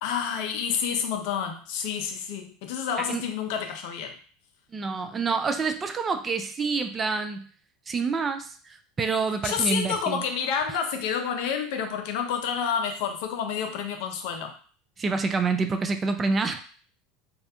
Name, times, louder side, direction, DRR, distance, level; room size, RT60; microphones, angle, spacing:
voice 1, 0.0-4.2 9.4-14.5, left 7 dB, 65° left, 5 dB, 0.5 m, -29 dB
voice 2, 4.7-7.5 7.9-10.2 15.0-16.6, right 4 dB, 25° right, 7 dB, 0.3 m, -27 dB
2.3 x 2.0 x 2.8 m, 0.42 s
hypercardioid pair, 85°, 0 cm